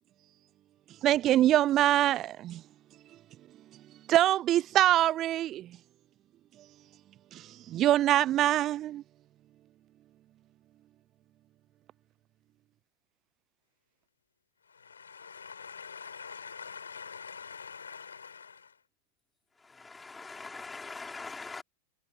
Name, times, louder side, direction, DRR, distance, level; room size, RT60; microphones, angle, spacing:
voice 1, 1.0-2.6 4.1-5.7 7.3-9.0, right 13 dB, 30° right, 0.6 m, -24 dB
voice 2, 14.7-18.7, left 6 dB, 70° left, 5.3 m, -45 dB
voice 3, 19.6-21.6, left 4 dB, 10° left, 5.3 m, -42 dB
figure-of-eight pair, 90°, 0 cm